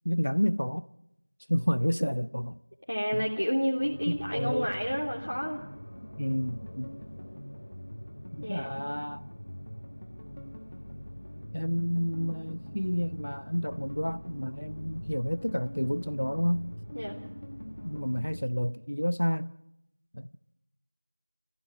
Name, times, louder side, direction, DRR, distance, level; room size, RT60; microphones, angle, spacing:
voice 1, 0.0-0.8 1.5-2.6 3.1-3.3 4.1-4.7 6.2-7.0 8.3-9.3 11.5-16.6 17.8-19.5 20.1-20.3, equal, 65° left, 0.7 m, -30 dB
voice 2, 2.9-5.6 8.4-8.7 16.9-17.2, equal, 90° left, 3.1 m, -30 dB
sound 1, 3.8-18.4, equal, 30° left, 1.6 m, -43 dB
29.5 x 15.5 x 6.2 m
figure-of-eight pair, 180°, 0 cm